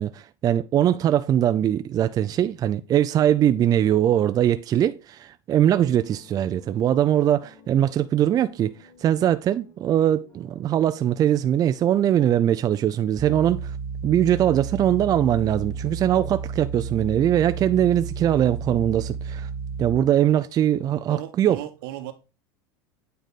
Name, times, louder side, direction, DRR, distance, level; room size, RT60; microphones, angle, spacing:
voice 1, 0.0-8.7 9.0-13.7 14.0-19.5 19.8-21.6, right 11 dB, 30° right, 0.4 m, -21 dB
sound 1, 5.9-12.3, left 4 dB, 60° left, 3.6 m, -54 dB
sound 2, 13.2-20.0, right 5 dB, 40° left, 3.3 m, -32 dB
voice 2, 21.1-22.1, right 14 dB, 75° right, 1.2 m, -35 dB
9.0 x 3.4 x 4.0 m
supercardioid pair, 115°, 12 cm